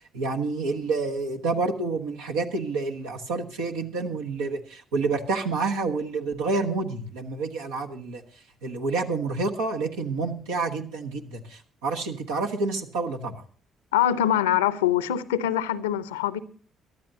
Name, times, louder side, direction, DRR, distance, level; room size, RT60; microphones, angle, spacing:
voice 1, 0.1-8.2 8.6-13.4, right 3 dB, 80° right, 1.3 m, -28 dB
voice 2, 13.9-16.4, left 11 dB, 80° left, 0.6 m, -24 dB
23.0 x 12.0 x 2.7 m
figure-of-eight pair, 45°, 0 cm